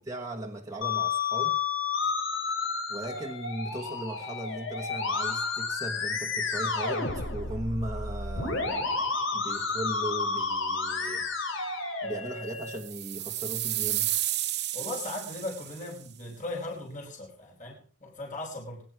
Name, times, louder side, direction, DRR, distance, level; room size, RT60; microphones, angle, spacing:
voice 1, 0.0-1.6 2.5-8.9 9.3-11.3 12.0-14.1, right 1 dB, 15° right, -1 dB, 1.3 m, -37 dB
Musical instrument, 0.8-12.8, left 4 dB, 60° left, 3.2 m, -31 dB
sound 1, 12.7-15.9, right 14 dB, 50° right, 1.2 m, -32 dB
voice 2, 14.7-18.8, left 2 dB, 35° left, -2 dB, 4.3 m, -38 dB
21.0 x 9.7 x 4.7 m, 0.40 s
head